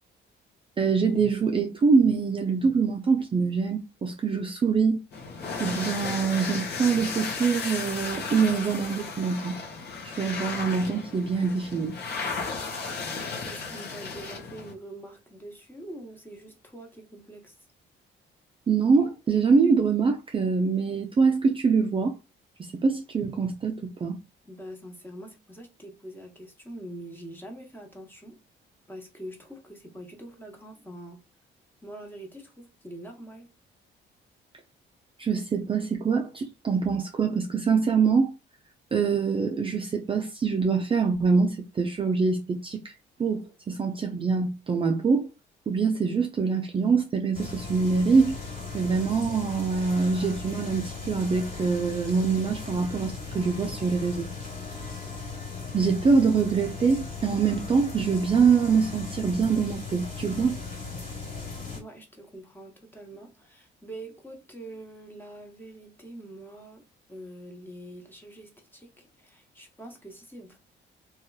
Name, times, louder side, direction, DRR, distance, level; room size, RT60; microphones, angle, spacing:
voice 1, 0.8-5.0 5.6-9.6 10.0-12.0 18.7-22.2 22.6-24.2 35.2-38.3 38.9-42.9 43.2-45.3 45.7-48.3 48.7-54.3 55.7-60.6, right 5 dB, 25° right, 0.4 m, -24 dB
sound 1, 5.1-14.7, left 4 dB, 55° left, 0.8 m, -34 dB
voice 2, 13.4-17.5 24.5-28.4 28.9-31.2 31.8-33.5 61.7-70.6, right 1 dB, 10° left, 0.9 m, -44 dB
sound 2, 47.3-61.8, left 4 dB, 40° left, 1.6 m, -37 dB
2.9 x 2.3 x 2.2 m
cardioid pair, 90°, 20 cm